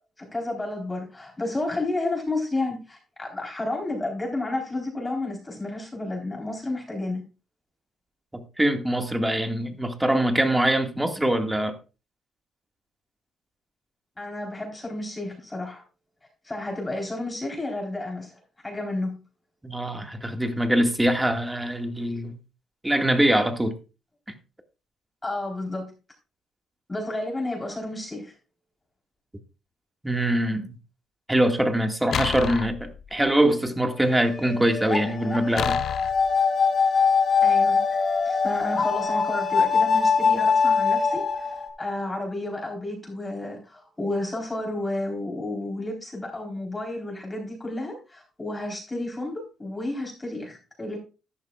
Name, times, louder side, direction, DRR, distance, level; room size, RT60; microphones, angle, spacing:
voice 1, 0.2-7.2 14.2-15.8 16.4-19.2 25.2-25.9 26.9-28.3 37.4-37.8 38.2-51.0, left 2 dB, 20° left, 4.0 m, -31 dB
voice 2, 8.3-11.7 19.6-22.3 22.8-23.7 30.0-30.7 31.3-35.8, right 1 dB, 10° right, 2.0 m, -23 dB
sound 1, 32.1-33.3 35.6-36.3, left 9 dB, 65° left, 0.5 m, -30 dB
sound 2, 34.1-41.7, left 5 dB, 40° left, 3.0 m, -23 dB
13.5 x 11.0 x 2.4 m
cardioid pair, 90°, 0 cm